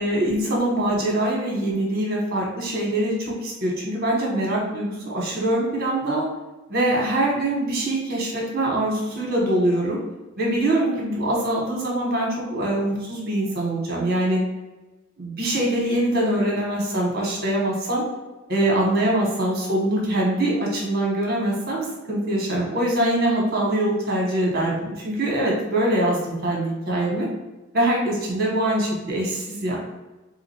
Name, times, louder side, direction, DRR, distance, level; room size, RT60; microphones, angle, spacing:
voice 1, 0.0-6.2 6.7-10.0 10.4-14.4 15.2-18.0 18.5-27.3 27.7-29.8, right 1 dB, 50° right, -2 dB, 1.1 m, -23 dB
2.9 x 2.5 x 4.2 m, 1.1 s
head